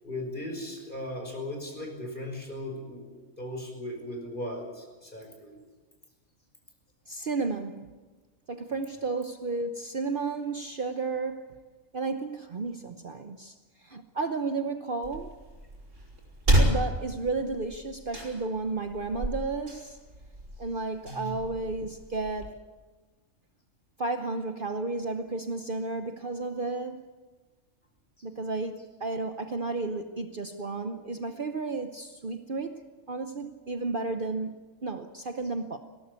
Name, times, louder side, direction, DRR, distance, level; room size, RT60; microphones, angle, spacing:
voice 1, 0.0-5.5 21.0-21.3, left 1 dB, 40° left, 5.7 m, -37 dB
voice 2, 7.1-7.9 8.5-11.5 11.9-13.5 13.8-15.4 16.6-20.0 20.6-22.6 24.0-27.0 28.2-32.8 33.1-35.8, right 3 dB, 45° right, 1.0 m, -32 dB
sound 1, 15.0-22.5, right 1 dB, 70° right, 5.4 m, -31 dB
19.5 x 17.5 x 8.3 m
omnidirectional pair, 1.4 m